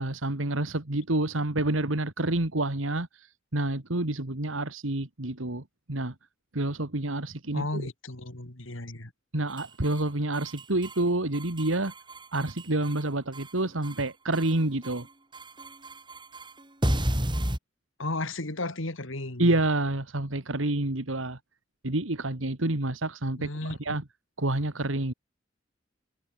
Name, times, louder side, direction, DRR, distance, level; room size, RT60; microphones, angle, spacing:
voice 1, 0.0-6.1 6.5-7.8 9.3-11.9 12.3-15.1 19.4-21.4 21.8-24.0 24.4-25.1, right 2 dB, 85° right, 2.3 m, -28 dB
voice 2, 7.5-9.1 18.0-19.5 23.4-23.8, left 2 dB, 85° left, 3.2 m, -34 dB
sound 1, 9.5-10.0 10.3-11.0 11.3-13.0 13.3-14.0 14.3-15.0 15.3-17.6, equal, 25° right, 5.6 m, -32 dB
head